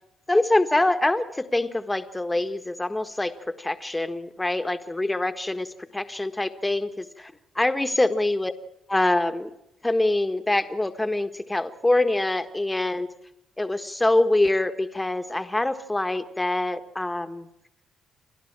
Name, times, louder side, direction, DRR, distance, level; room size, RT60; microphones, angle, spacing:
voice 1, 0.3-3.3 3.6-5.7 5.9-8.5 8.9-9.5 9.8-13.1 13.6-17.5, left 2 dB, 10° left, 9 dB, 1.5 m, -24 dB
29.0 x 12.0 x 8.8 m, 0.86 s
cardioid pair, 90°, 0 cm